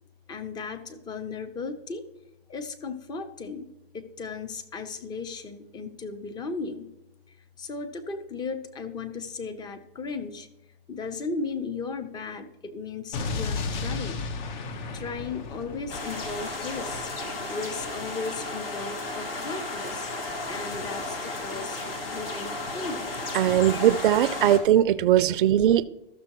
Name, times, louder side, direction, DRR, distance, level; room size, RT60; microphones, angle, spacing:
voice 1, 0.3-2.0 2.5-3.7 3.9-6.9 7.6-10.5 10.9-14.2 14.9-17.1 17.5-20.1 20.5-23.1 24.5-24.9 25.4-25.5, left 4 dB, 15° left, 0.6 m, -36 dB
Explosion, 13.1-17.2, left 4 dB, 50° left, 1.0 m, -34 dB
sound 1, 15.9-24.6, left 2 dB, 70° left, 2.1 m, -34 dB
voice 2, 23.3-25.8, right 11 dB, 60° right, 0.5 m, -20 dB
13.5 x 6.5 x 3.0 m
hypercardioid pair, 130°, 30 cm